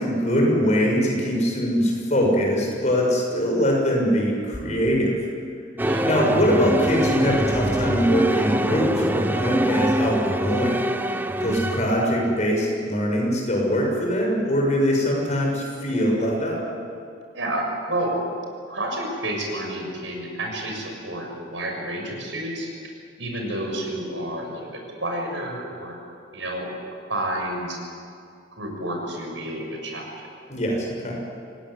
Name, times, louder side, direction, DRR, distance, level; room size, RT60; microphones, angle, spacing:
voice 1, 0.0-5.2 6.0-10.9 11.4-16.6 30.5-31.2, equal, 35° left, -1 dB, 6.6 m, -22 dB
sound 1, 5.8-12.4, right 1 dB, 10° right, 0.8 m, -24 dB
voice 2, 17.3-18.2 18.7-22.7 23.2-26.0 26.3-26.7 27.1-27.8 28.6-30.1, right 1 dB, 75° right, 1 dB, 6.6 m, -30 dB
26.5 x 17.5 x 9.9 m, 2.4 s
head